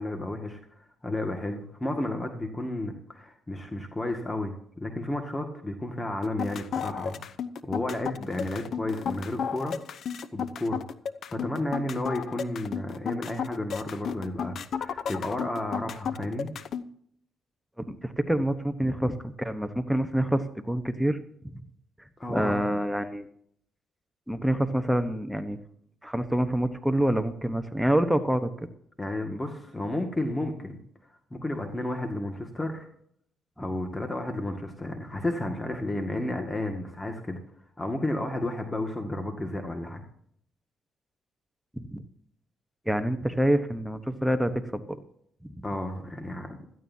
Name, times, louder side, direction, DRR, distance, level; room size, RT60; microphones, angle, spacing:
voice 1, 0.0-7.3 7.6-9.8 10.3-10.8 11.3-16.5 22.2-22.6 29.0-32.9 33.6-37.4 37.8-40.0 45.6-46.6, left 1 dB, 20° left, 4 dB, 2.0 m, -32 dB
sound 1, 6.2-16.8, left 7 dB, 65° left, 0.8 m, -33 dB
voice 2, 17.8-21.2 21.5-21.6 22.3-23.3 24.3-25.6 26.0-28.5 41.8-42.0 42.9-45.0 45.4-45.6, right 1 dB, ahead, 9 dB, 1.1 m, -27 dB
16.5 x 14.0 x 2.8 m, 0.66 s
cardioid pair, 80°, 0 cm